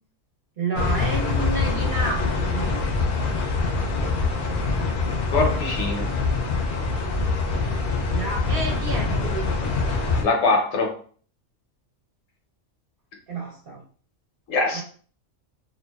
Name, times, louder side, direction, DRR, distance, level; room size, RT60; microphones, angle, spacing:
voice 1, 0.6-2.8 7.0-7.5 8.1-9.5 13.3-13.8 14.7-14.8, right 3 dB, 55° right, -2 dB, 0.8 m, -30 dB
sound 1, 0.7-10.2, left 3 dB, 60° left, 0.6 m, -24 dB
voice 2, 5.3-6.1 10.2-10.9 14.5-14.8, left 3 dB, 90° left, 2 dB, 1.1 m, -22 dB
2.5 x 2.2 x 2.2 m, 0.43 s
omnidirectional pair, 1.3 m